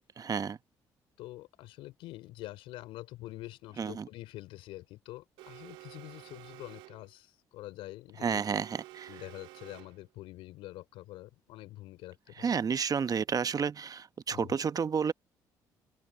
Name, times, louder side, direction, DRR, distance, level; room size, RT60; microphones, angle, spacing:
voice 1, 0.2-0.6 3.8-4.1 8.2-9.1 12.4-15.1, right 6 dB, 40° right, 1.0 m, -31 dB
voice 2, 1.2-8.4 9.1-12.5 14.3-14.6, left 17 dB, 75° left, 3.4 m, -46 dB
Alarm, 5.4-7.1 8.3-10.1, right 18 dB, 80° right, 2.9 m, -51 dB
open air
hypercardioid pair, 60°, 9 cm